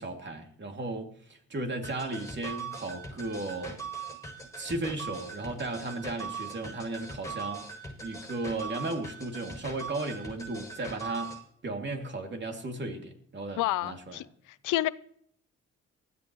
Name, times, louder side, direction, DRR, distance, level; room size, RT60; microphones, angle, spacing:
voice 1, 0.0-3.8 4.6-7.7 8.0-11.4 11.6-14.2, right 2 dB, 35° right, 2.7 m, -35 dB
sound 1, 1.8-11.4, right 4 dB, 10° left, 7.5 m, -41 dB
voice 2, 13.6-14.3 14.6-14.9, left 15 dB, 85° left, 0.7 m, -28 dB
19.5 x 13.5 x 3.1 m
cardioid pair, 90°, 30 cm